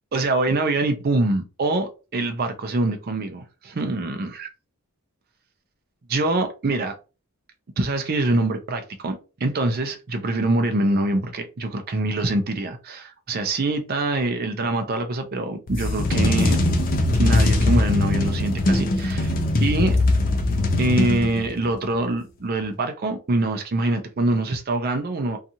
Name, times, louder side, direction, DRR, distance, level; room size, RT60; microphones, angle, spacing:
voice 1, 0.1-4.5 6.1-6.9 7.8-16.6 17.2-19.3 19.6-20.0 20.8-25.4, right 2 dB, 45° right, 0.5 m, -24 dB
sound 1, 15.7-21.7, left 2 dB, 40° left, 0.5 m, -21 dB
2.8 x 2.4 x 2.6 m
head